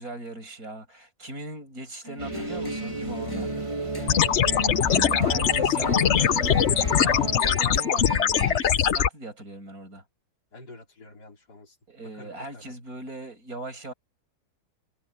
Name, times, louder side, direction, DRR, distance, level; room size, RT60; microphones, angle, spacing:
voice 1, 0.0-3.5 5.1-10.0 11.9-13.9, right 2 dB, 60° right, 8.2 m, -39 dB
sound 1, 2.0-8.8, equal, 15° left, 6.3 m, -39 dB
sound 2, 2.2-7.4, right 2 dB, 20° right, 2.2 m, -33 dB
voice 2, 3.4-5.1 10.5-11.8 12.1-12.7, left 2 dB, 80° left, 4.5 m, -49 dB
sound 3, 4.1-9.1, left 9 dB, 50° left, 1.0 m, -22 dB
omnidirectional pair, 1.7 m